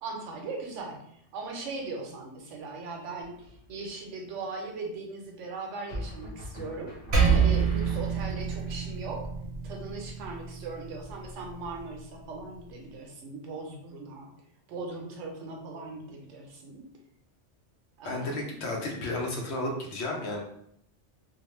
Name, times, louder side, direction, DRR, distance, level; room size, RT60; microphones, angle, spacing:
voice 1, 0.0-6.9 7.3-9.2 9.6-14.3 14.7-16.9 18.0-18.9, right 3 dB, 85° right, 1 dB, 0.9 m, -39 dB
sound 1, 3.2-3.7 5.9-8.5, left 1 dB, 40° left, 0.8 m, -40 dB
Percussion, 7.1-11.9, right 6 dB, 55° right, 0.8 m, -28 dB
voice 2, 18.0-20.4, left 2 dB, 70° left, 0 dB, 0.9 m, -32 dB
2.4 x 2.1 x 3.0 m, 0.69 s
omnidirectional pair, 1.2 m